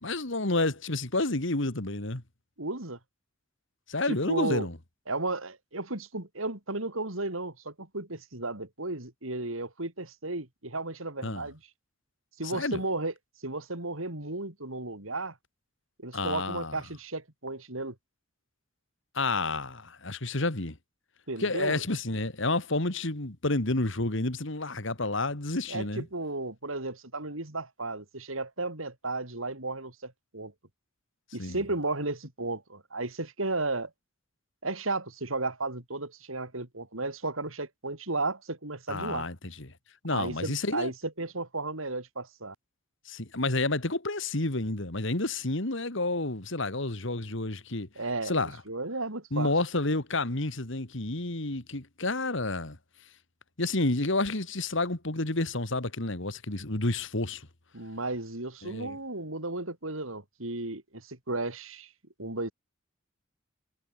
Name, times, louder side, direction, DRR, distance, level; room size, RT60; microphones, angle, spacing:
voice 1, 0.0-2.2 3.9-4.8 11.2-11.5 12.4-12.8 16.1-16.8 19.1-20.8 21.4-26.1 31.4-31.6 38.9-39.7 40.0-40.9 43.1-47.9 48.2-48.6 49.3-52.8 53.6-57.5 58.6-59.0, left 2 dB, 65° left, 2.5 m, -30 dB
voice 2, 2.6-3.0 4.1-4.7 5.1-11.6 12.4-13.1 13.4-15.3 16.0-17.9 21.3-21.8 25.7-30.5 31.3-33.9 34.6-39.3 40.1-42.5 47.9-49.5 57.7-61.9 62.2-62.5, right 2 dB, 80° right, 4.9 m, -34 dB
head